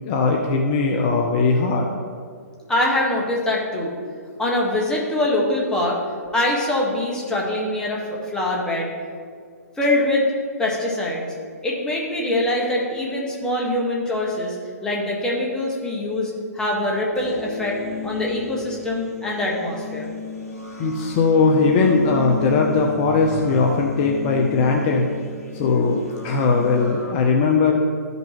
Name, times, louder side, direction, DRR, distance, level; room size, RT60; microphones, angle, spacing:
voice 1, 0.0-2.0 20.8-25.1 25.5-27.8, left 4 dB, 40° left, 1 dB, 0.7 m, -19 dB
voice 2, 2.7-3.9 4.4-6.0 6.3-8.0 8.3-8.9 9.8-10.2 10.6-11.2 11.6-14.6 14.8-17.8 18.0-20.1, left 1 dB, 10° left, -3 dB, 1.5 m, -23 dB
sound 1, 17.1-27.1, left 4 dB, 65° left, 1.6 m, -34 dB
13.0 x 5.4 x 3.0 m, 2.1 s
hypercardioid pair, 130°, 9 cm